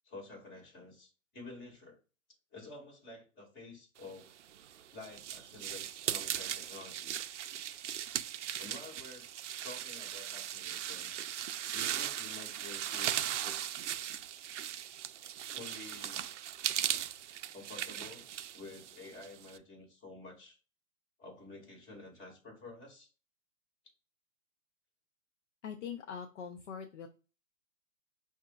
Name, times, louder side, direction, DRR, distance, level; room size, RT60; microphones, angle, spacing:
voice 1, 0.0-2.0 2.5-4.3 4.9-7.1 8.6-9.3 9.6-11.1 11.7-13.9 15.5-16.3 17.5-18.3 18.5-20.6 21.2-23.1, left 2 dB, 25° left, 0 dB, 2.2 m, -50 dB
sound 1, 4.4-19.6, right 11 dB, 60° right, 0.5 m, -38 dB
voice 2, 25.6-27.1, left 7 dB, 60° left, 4 dB, 0.7 m, -42 dB
6.0 x 2.7 x 2.4 m, 0.35 s
hypercardioid pair, 150°, 41 cm